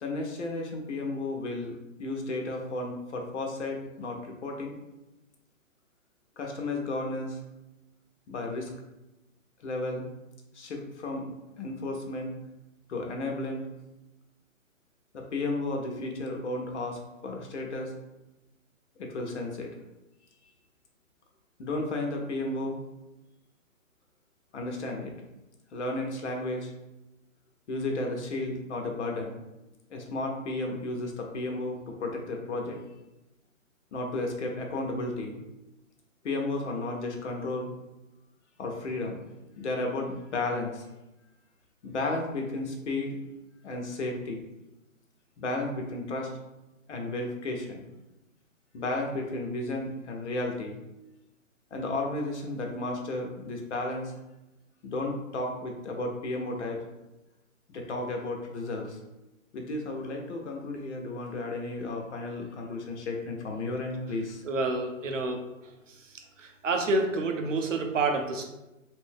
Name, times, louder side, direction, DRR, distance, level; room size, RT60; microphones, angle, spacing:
voice 1, 0.0-4.8 6.4-7.4 8.3-8.7 9.6-10.1 10.5-12.3 12.9-13.7 15.1-17.9 19.0-19.7 20.4-20.5 21.6-22.8 24.5-25.1 25.7-26.7 27.7-29.4 29.9-32.8 33.9-35.4 36.2-37.7 38.6-39.2 39.6-40.8 41.8-43.2 43.6-44.4 45.4-46.3 46.9-47.8 48.7-50.8 51.7-54.1 54.8-56.8 57.7-59.0 59.5-64.4, left 2 dB, 55° left, 1 dB, 0.7 m, -33 dB
voice 2, 64.4-65.4 66.4-68.5, right 3 dB, 65° right, 4 dB, 0.7 m, -28 dB
2.7 x 2.5 x 3.5 m, 0.97 s
hypercardioid pair, 160°, 41 cm